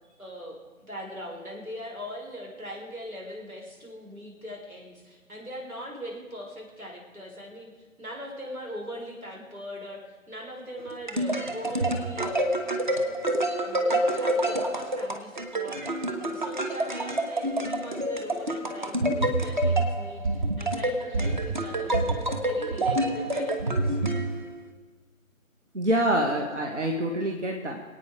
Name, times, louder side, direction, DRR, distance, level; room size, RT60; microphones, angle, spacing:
voice 1, 0.2-7.7 8.0-12.5 12.8-13.3 13.6-15.9 16.2-24.3, equal, 85° right, -1 dB, 5.7 m, -40 dB
sound 1, 10.8-24.7, right 1 dB, 35° right, 1.4 m, -27 dB
voice 2, 25.7-27.8, right 1 dB, 55° right, 1 dB, 1.9 m, -26 dB
26.0 x 9.1 x 5.1 m, 1.5 s
figure-of-eight pair, 155°, 42 cm